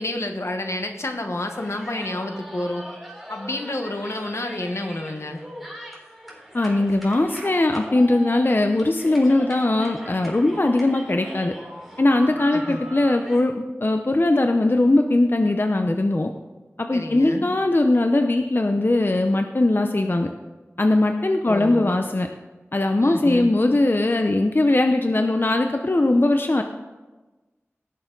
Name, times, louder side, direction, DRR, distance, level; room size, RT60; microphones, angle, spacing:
voice 1, 0.0-2.9 3.3-5.4 12.5-12.8 16.9-17.5 21.4-21.9 23.0-23.5, left 1 dB, 75° left, 5 dB, 1.1 m, -29 dB
sound 1, 1.4-13.4, equal, ahead, 3.6 m, -40 dB
voice 2, 6.5-11.5 12.0-16.3 16.8-20.3 20.8-22.3 22.7-26.6, left 2 dB, 50° left, 5 dB, 0.7 m, -20 dB
17.5 x 6.8 x 3.9 m, 1.2 s
wide cardioid pair, 50°, 5 cm